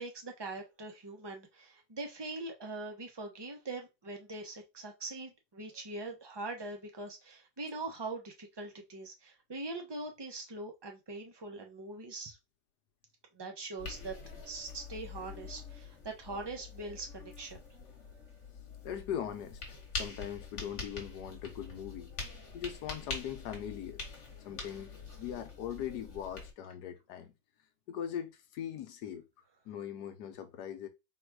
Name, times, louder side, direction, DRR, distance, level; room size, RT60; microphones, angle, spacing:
voice 1, 0.0-12.4 13.3-14.2 14.4-17.6, right 2 dB, 25° right, 0.5 m, -42 dB
sound 1, 13.8-26.5, left 4 dB, 45° left, 1.6 m, -45 dB
voice 2, 18.6-19.6 19.9-22.2 22.5-24.0 24.4-27.3 27.9-29.2 29.7-30.9, left 9 dB, 80° left, 1.3 m, -40 dB
4.0 x 2.4 x 4.6 m
omnidirectional pair, 1.8 m